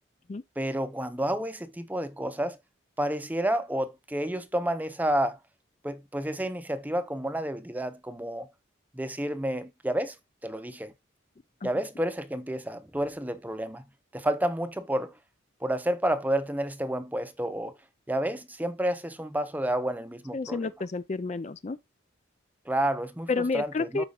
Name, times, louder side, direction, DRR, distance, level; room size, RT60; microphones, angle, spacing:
voice 1, 0.6-2.6 3.0-5.4 5.8-8.5 8.9-10.2 10.4-10.9 11.6-13.8 14.1-15.1 15.6-17.7 18.1-20.7 22.7-24.1, right 1 dB, 10° right, 0.6 m, -30 dB
voice 2, 20.3-21.8 23.3-24.0, left 3 dB, 35° left, 0.4 m, -30 dB
13.0 x 4.9 x 2.3 m
head